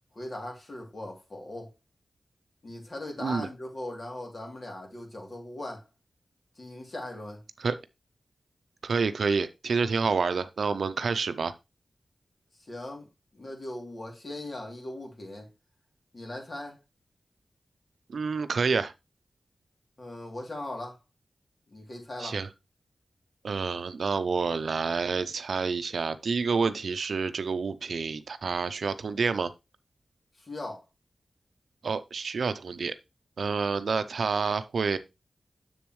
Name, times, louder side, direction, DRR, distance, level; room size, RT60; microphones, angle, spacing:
voice 1, 0.1-1.7 2.6-5.8 6.6-7.4 12.7-13.1 13.3-15.5 16.1-16.8 20.0-21.0 21.7-22.4 30.4-30.8, left 1 dB, 50° left, 2.8 m, -39 dB
voice 2, 8.8-11.5 18.1-18.9 22.2-22.5 23.4-29.5 31.8-32.9 33.4-35.0, right 5 dB, 80° right, 0.6 m, -28 dB
7.1 x 7.0 x 3.1 m
cardioid pair, 60°, 0 cm